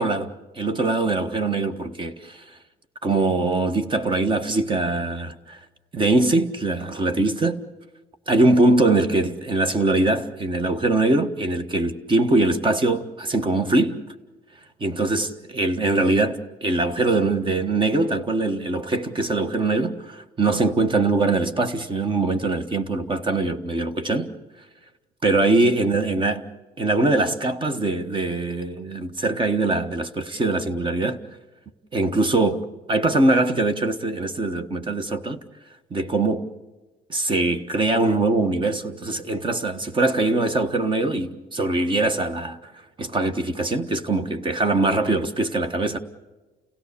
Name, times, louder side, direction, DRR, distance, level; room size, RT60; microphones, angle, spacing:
voice 1, 0.0-2.4 3.0-5.6 5.9-7.6 8.3-14.0 14.8-24.3 25.2-26.4 26.8-31.2 31.9-35.4 35.9-36.5 37.1-42.7 43.0-46.0, right 2 dB, 30° right, 1.5 m, -22 dB
30.0 x 17.0 x 7.0 m
cardioid pair, 110°, 17 cm